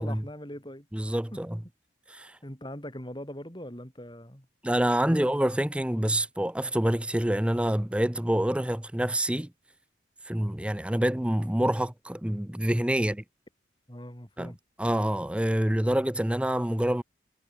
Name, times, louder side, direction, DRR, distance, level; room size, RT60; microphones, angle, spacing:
voice 1, 0.0-0.9 1.3-1.4 2.4-4.5 5.0-5.2 13.0-13.1 13.9-14.6, equal, 25° left, 5.0 m, -41 dB
voice 2, 0.9-1.6 2.1-2.3 4.6-9.5 10.3-13.2 14.4-14.5 14.8-17.0, right 1 dB, 5° right, 0.6 m, -27 dB
head